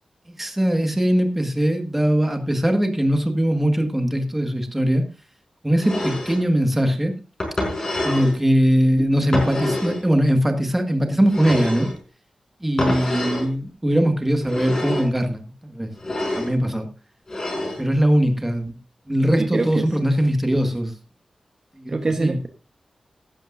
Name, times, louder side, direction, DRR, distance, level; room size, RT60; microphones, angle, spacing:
voice 1, 0.4-5.0 5.6-7.1 8.0-11.9 12.6-15.9 16.4-16.9 17.8-18.8 19.1-20.9 21.8-22.4, equal, 10° right, 5 dB, 1.7 m, -21 dB
sound 1, 5.8-6.4 7.4-8.4 9.3-10.0 11.3-12.0 12.8-13.5 14.4-15.1 16.0-16.5 17.3-17.8, left 1 dB, 30° left, 5.0 m, -26 dB
voice 2, 19.4-19.9 21.9-22.5, right 3 dB, 35° right, 5 dB, 1.1 m, -25 dB
16.0 x 12.0 x 2.6 m, 0.30 s
wide cardioid pair, 165°, 2 cm